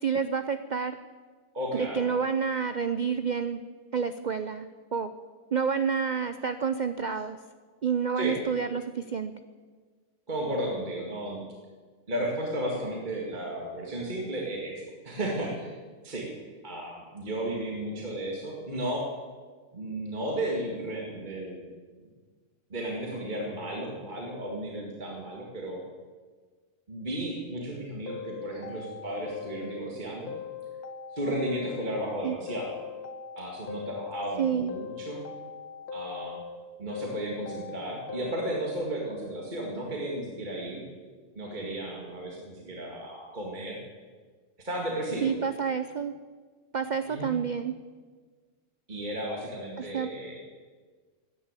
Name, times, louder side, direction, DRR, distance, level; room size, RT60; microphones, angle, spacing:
voice 1, 0.0-1.0 1.7-3.6 3.9-5.1 5.5-7.4 7.8-9.3 32.2-32.4 34.4-34.7 45.2-46.1 46.7-47.8 49.8-50.1, right 6 dB, 80° right, 10 dB, 0.4 m, -29 dB
voice 2, 1.5-2.1 8.2-8.4 10.3-11.4 12.1-15.8 16.0-16.3 16.6-19.1 19.7-21.7 22.7-25.8 26.9-30.3 31.1-32.7 33.4-35.2 35.9-36.4 36.8-40.8 41.4-43.8 44.6-45.3 47.1-47.3 48.9-50.4, right 1 dB, 30° right, -1 dB, 2.3 m, -34 dB
sound 1, 28.1-29.9 30.3-32.2 32.5-34.4 34.7-36.6 36.9-38.8, left 6 dB, 75° left, 1.8 m, -40 dB
16.0 x 10.5 x 8.2 m, 1.5 s
omnidirectional pair, 1.6 m